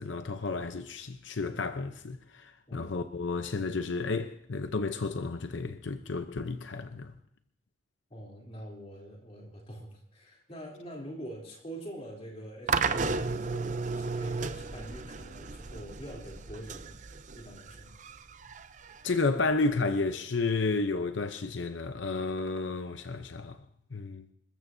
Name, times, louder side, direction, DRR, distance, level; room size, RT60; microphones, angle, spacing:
voice 1, 0.0-7.1 19.0-23.6 23.9-24.3, left 3 dB, 85° left, 0.7 m, -32 dB
voice 2, 8.1-17.0 17.4-18.0, right 1 dB, 35° left, 3.4 m, -45 dB
sound 1, 12.7-19.8, right 4 dB, 40° right, 0.6 m, -34 dB
27.0 x 14.0 x 2.7 m
head